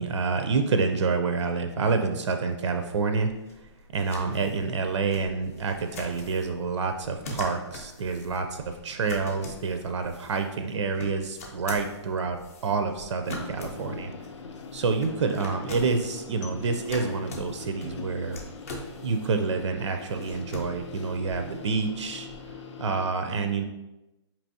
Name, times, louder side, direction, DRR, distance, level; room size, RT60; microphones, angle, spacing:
voice 1, 0.0-3.3 3.9-14.1 14.7-18.4 19.0-22.3 22.8-23.6, right 4 dB, 80° right, 6 dB, 0.4 m, -28 dB
sound 1, 2.9-22.5, left 2 dB, 30° left, 0.5 m, -44 dB
sound 2, 13.2-23.1, left 5 dB, 80° left, 0.6 m, -42 dB
4.5 x 2.8 x 2.7 m, 0.98 s
hypercardioid pair, 175°, 15 cm